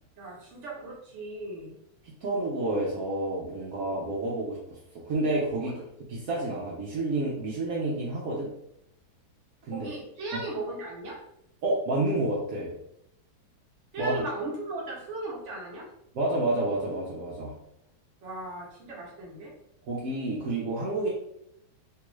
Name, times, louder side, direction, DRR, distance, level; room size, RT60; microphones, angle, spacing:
voice 1, 0.2-1.7 5.6-5.8 9.7-11.2 13.9-15.9 18.2-19.5, right 2 dB, 50° right, -3 dB, 1.0 m, -37 dB
voice 2, 2.0-5.7 6.1-8.5 9.6-9.9 11.6-12.7 14.0-14.1 16.1-17.5 19.8-21.1, right 2 dB, 70° right, -5 dB, 0.8 m, -29 dB
3.4 x 2.4 x 3.0 m, 0.76 s
omnidirectional pair, 2.2 m